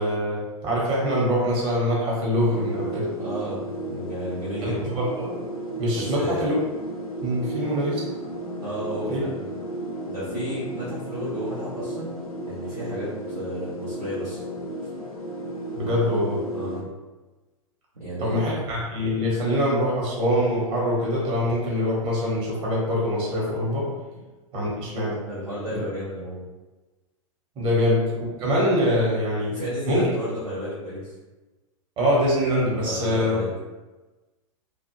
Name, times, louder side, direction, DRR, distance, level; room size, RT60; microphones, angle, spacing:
voice 1, 0.0-3.1 4.6-5.3 5.8-6.5 7.2-8.1 9.1-9.2 15.7-16.4 18.2-23.9 24.5-25.2 25.7-25.8 27.6-28.0 28.4-29.5 29.9-30.0 32.0-33.4, equal, 30° right, -5 dB, 1.0 m, -24 dB
sound 1, 2.4-16.8, right 1 dB, 90° left, 0.6 m, -34 dB
voice 2, 3.2-4.8 5.9-6.5 8.6-9.4 10.0-12.2 12.4-14.4 16.5-16.8 18.0-18.6 24.1-24.2 25.2-26.4 29.5-31.1 32.8-33.5, equal, 85° right, -10 dB, 0.8 m, -32 dB
2.4 x 2.1 x 2.9 m, 1.2 s
figure-of-eight pair, 100°, 18 cm